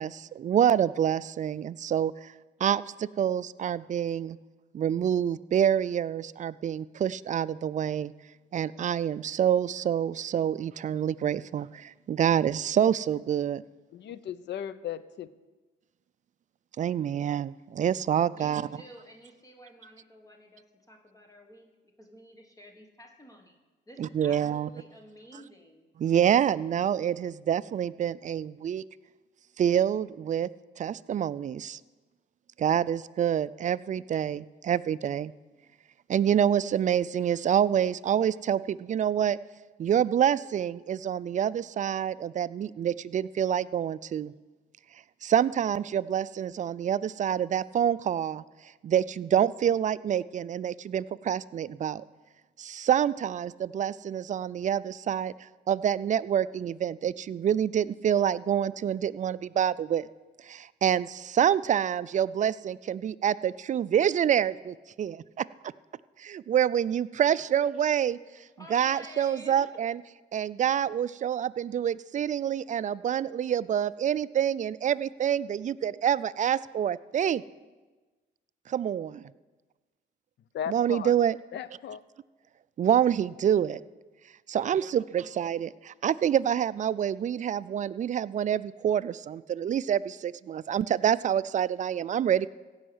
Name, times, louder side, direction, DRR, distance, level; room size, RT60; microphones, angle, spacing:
voice 1, 0.0-2.3 2.6-4.4 4.7-8.1 8.5-13.6 16.8-18.7 24.0-24.7 26.0-28.8 29.6-30.5 30.8-31.8 32.6-35.3 36.1-39.4 39.8-44.3 45.2-48.4 48.8-52.0 52.6-60.1 60.4-65.5 66.2-68.2 68.7-70.0 70.3-77.4 78.7-79.3 80.7-81.4 82.8-83.8 84.5-92.5, right 9 dB, 40° right, 16 dB, 0.4 m, -27 dB
voice 2, 13.9-15.3 80.5-81.2 81.5-82.0, left 9 dB, 65° left, 16 dB, 0.6 m, -36 dB
voice 3, 18.3-21.7 22.0-23.6 23.9-25.9 68.6-69.6, equal, 15° left, 3 dB, 1.3 m, -51 dB
16.0 x 5.6 x 7.8 m, 1.3 s
cardioid pair, 90°, 20 cm